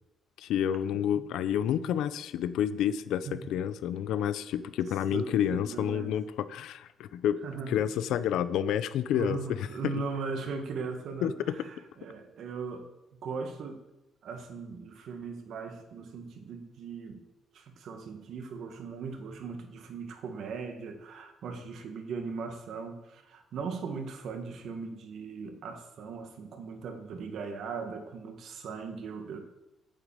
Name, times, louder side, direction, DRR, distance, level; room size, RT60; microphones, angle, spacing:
voice 1, 0.4-7.4 7.7-9.4 9.9-10.0 11.2-11.5, left 10 dB, 80° left, 14 dB, 0.7 m, -29 dB
voice 2, 5.1-6.2 7.4-7.8 9.1-13.8 14.2-17.2 17.5-29.4, right 5 dB, 60° right, 6 dB, 1.8 m, -39 dB
9.0 x 8.2 x 7.7 m, 0.96 s
cardioid pair, 155°, 0 cm